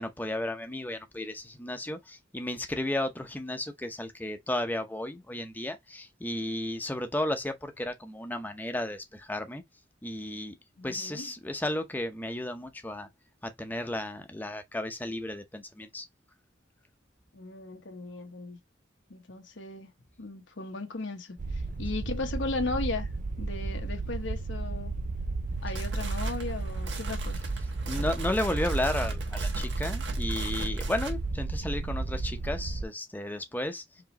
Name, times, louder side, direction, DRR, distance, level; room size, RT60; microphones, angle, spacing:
voice 1, 0.0-9.6 10.0-10.5 10.8-13.1 13.4-16.1 27.9-33.8, left 1 dB, 10° left, 0.7 m, -33 dB
voice 2, 10.8-11.3 17.3-18.6 19.1-19.9 20.2-23.1 23.4-24.9 25.6-27.4, left 3 dB, 85° left, 1.1 m, -36 dB
sound 1, 21.4-32.8, right 3 dB, 45° right, 0.5 m, -33 dB
sound 2, 25.5-31.2, right 2 dB, 70° right, 1.2 m, -39 dB
4.8 x 3.1 x 2.9 m
head